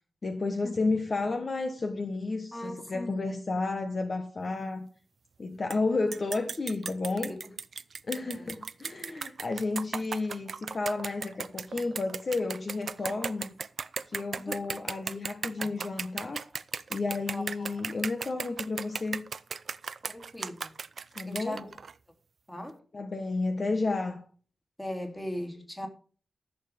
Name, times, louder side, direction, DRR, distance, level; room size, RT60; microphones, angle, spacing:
voice 1, 0.2-4.9 5.4-7.4 8.1-13.5 14.1-16.4 16.9-19.2 21.1-21.6 22.9-24.2, left 3 dB, 45° left, 1.3 m, -32 dB
voice 2, 2.5-3.1 7.2-7.5 8.3-8.5 13.0-13.2 14.5-14.8 15.6-15.7 17.3-17.5 20.0-20.7 21.2-21.7 22.5-22.8 24.8-25.9, left 1 dB, 15° left, 2.8 m, -39 dB
sound 1, 5.7-5.8 6.1-21.9, right 5 dB, 65° right, 0.6 m, -36 dB
14.0 x 7.0 x 5.3 m
wide cardioid pair, 140°, 0 cm